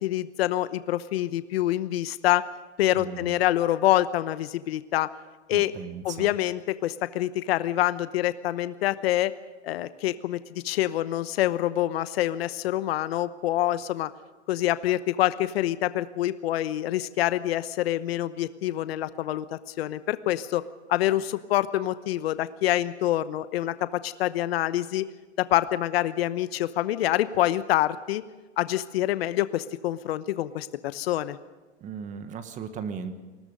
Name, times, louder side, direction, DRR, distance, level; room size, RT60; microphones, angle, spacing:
voice 1, 0.0-2.4 2.8-5.1 5.5-5.7 6.0-9.3 9.6-10.4 10.6-14.1 14.5-20.6 20.9-23.7 24.0-25.1 25.5-28.2 28.6-31.4, left 14 dB, 60° left, 13 dB, 1.0 m, -26 dB
voice 2, 2.9-3.3 5.5-6.3 31.8-33.1, right 6 dB, 20° right, 10 dB, 1.4 m, -37 dB
29.5 x 20.5 x 5.3 m, 1.2 s
hypercardioid pair, 150°, 34 cm